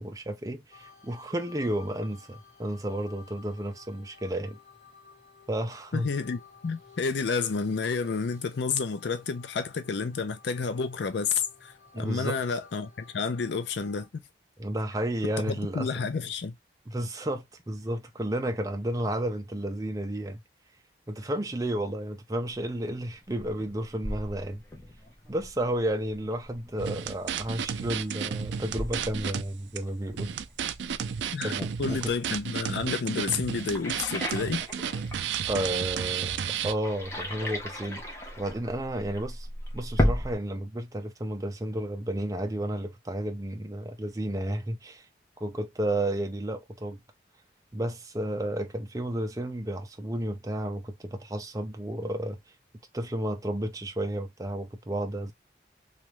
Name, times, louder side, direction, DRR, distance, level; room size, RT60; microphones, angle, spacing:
voice 1, 0.0-4.6 5.5-6.1 11.9-12.4 14.6-15.9 16.9-20.4 21.1-24.6 25.3-30.3 31.4-32.1 35.5-39.5 39.7-45.0 45.4-47.0 47.7-52.4 52.9-55.3, right 1 dB, 20° right, 0.5 m, -32 dB
sound 1, 0.7-14.1, left 5 dB, 35° left, 1.8 m, -55 dB
voice 2, 5.9-14.2 15.5-16.6 31.3-31.5 31.8-34.6, left 5 dB, 70° left, 0.4 m, -30 dB
sound 2, 22.5-40.4, left 1 dB, 15° left, 0.8 m, -36 dB
sound 3, 26.8-29.4 29.8-29.9 30.2-36.7, right 7 dB, 75° right, 0.4 m, -32 dB
3.0 x 2.4 x 3.0 m
head